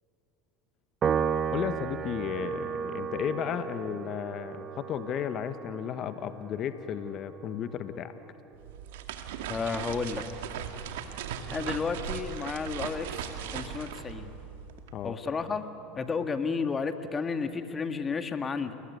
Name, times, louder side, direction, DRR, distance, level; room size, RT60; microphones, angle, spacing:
Piano, 1.0-7.6, right 7 dB, 35° right, 0.8 m, -34 dB
voice 1, 1.5-8.1 14.9-15.2, left 9 dB, 50° left, 10 dB, 1.3 m, -34 dB
sound 1, 8.5-14.9, right 8 dB, 80° right, 2.1 m, -38 dB
voice 2, 9.5-10.2 11.5-14.3 15.0-15.7 16.0-18.8, left 5 dB, 25° left, 8 dB, 1.9 m, -32 dB
29.5 x 20.5 x 9.4 m, 2.9 s
hypercardioid pair, 95°, 0 cm